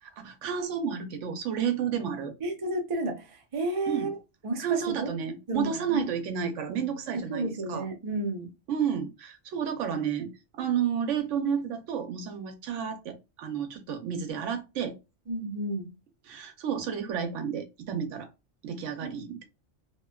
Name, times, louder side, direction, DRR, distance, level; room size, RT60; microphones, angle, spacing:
voice 1, 0.0-2.3 3.9-4.1 4.6-7.9 8.7-15.0 16.2-18.3 18.6-19.4, right 8 dB, 90° right, 1.0 m, -31 dB
voice 2, 2.4-4.2 4.4-5.1 5.5-6.1 7.1-8.5 15.3-15.9 19.0-19.4, right 2 dB, 35° right, 0.6 m, -32 dB
2.7 x 2.1 x 2.2 m
omnidirectional pair, 1.2 m